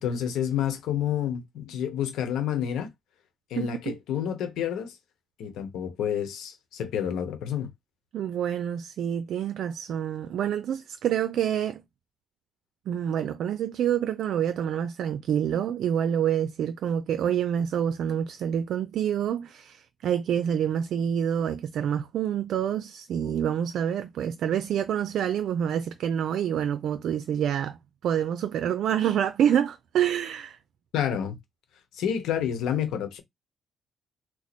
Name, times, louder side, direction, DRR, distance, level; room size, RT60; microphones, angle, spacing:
voice 1, 0.0-2.9 3.5-5.0 5.4-7.7 30.9-31.4 31.9-33.2, left 9 dB, 85° left, 0.9 m, -29 dB
voice 2, 3.5-3.9 8.1-11.8 12.9-30.6, right 9 dB, 75° right, 0.4 m, -27 dB
3.0 x 2.0 x 4.1 m
cardioid pair, 90°, 0 cm